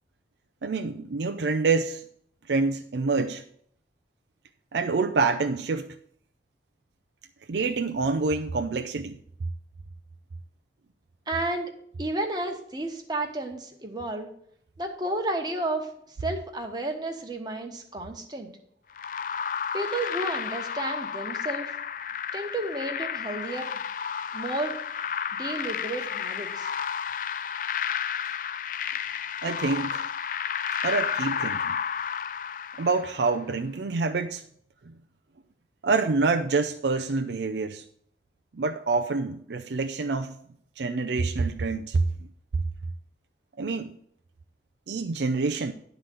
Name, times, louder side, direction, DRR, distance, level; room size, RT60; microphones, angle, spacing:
voice 1, 0.6-2.0 2.5-3.4 4.7-5.9 7.5-9.2 29.4-30.1 30.8-31.8 32.8-34.4 35.8-37.8 38.5-40.4 40.8-42.1 43.6-43.9 44.9-45.7, right 4 dB, 75° right, 0.5 m, -26 dB
voice 2, 11.3-14.3 14.8-15.9 16.2-18.5 19.7-21.8 22.3-23.7 24.3-24.8 25.3-26.7, right 2 dB, 25° right, 1.3 m, -32 dB
sound 1, 19.0-33.3, left 7 dB, 50° left, 0.3 m, -32 dB
11.5 x 4.0 x 7.7 m
head